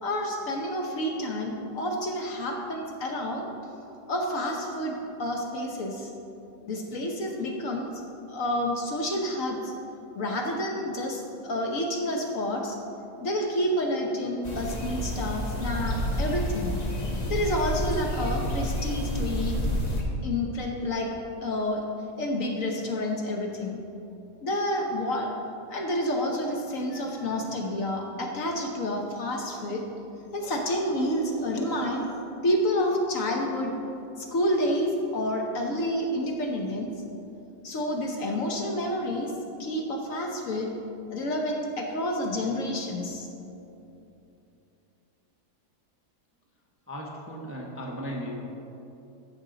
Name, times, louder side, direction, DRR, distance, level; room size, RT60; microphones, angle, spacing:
voice 1, 0.0-3.5 4.1-6.1 6.7-7.9 8.3-9.7 10.1-12.8 13.2-16.8 17.2-19.6 20.2-21.1 21.4-21.9 22.2-23.8 24.4-25.3 25.7-29.8 30.3-33.7 34.2-36.9 37.6-39.3 39.6-40.7 41.1-43.3, left 1 dB, 60° left, 1 dB, 1.2 m, -29 dB
sound 1, 14.4-20.0, equal, 30° left, 1.0 m, -29 dB
voice 2, 46.9-48.3, equal, 10° right, -2 dB, 0.8 m, -36 dB
14.0 x 6.2 x 3.9 m, 2.9 s
omnidirectional pair, 1.7 m